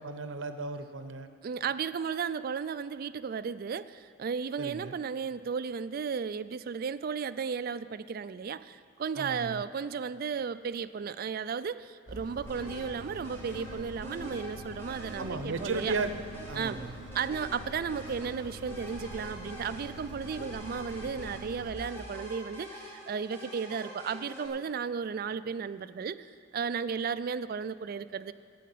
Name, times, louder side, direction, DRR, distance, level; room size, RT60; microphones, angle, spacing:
voice 1, 0.0-1.3 4.6-4.9 9.2-9.6 15.2-16.2 16.5-16.9, right 3 dB, 80° right, 9 dB, 0.7 m, -35 dB
voice 2, 1.4-15.9 16.5-16.8 17.1-28.3, right 6 dB, 50° right, 13 dB, 0.3 m, -34 dB
Engine, 12.1-21.7, right 1 dB, 50° left, 1.9 m, -45 dB
sound 1, 12.5-24.5, left 1 dB, 15° left, 2.1 m, -46 dB
9.9 x 8.4 x 8.4 m, 2.3 s
head